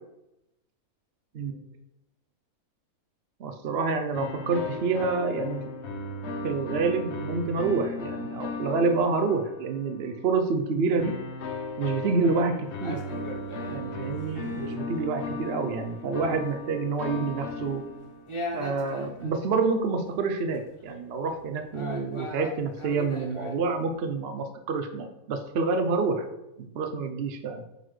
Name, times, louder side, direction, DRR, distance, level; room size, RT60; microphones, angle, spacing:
voice 1, 3.4-5.6 6.4-11.1 11.8-13.0 13.7-17.8 18.5-26.3 26.6-27.6, right 4 dB, 60° right, 5 dB, 0.7 m, -28 dB
sound 1, 4.1-9.9 11.0-18.4, left 2 dB, 55° left, 0.9 m, -36 dB
sound 2, 12.7-24.1, left 1 dB, 30° left, 0.6 m, -40 dB
9.1 x 4.0 x 3.2 m, 0.89 s
omnidirectional pair, 1.5 m